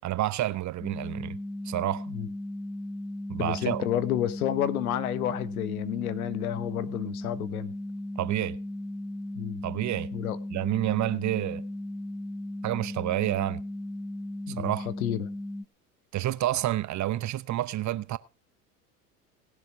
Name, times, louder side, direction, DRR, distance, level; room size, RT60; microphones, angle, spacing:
voice 1, 0.0-1.4 1.7-2.1 3.3-3.8 8.2-8.6 9.6-10.1 10.5-11.6 12.6-13.6 14.6-14.9 16.1-18.2, right 14 dB, 40° right, 0.9 m, -29 dB
sound 1, 0.8-15.6, left 1 dB, ahead, 1.0 m, -36 dB
voice 2, 3.4-7.7 9.3-9.6 10.1-10.4 14.5-15.3, left 12 dB, 80° left, 1.4 m, -30 dB
19.5 x 7.4 x 4.7 m
hypercardioid pair, 75°, 43 cm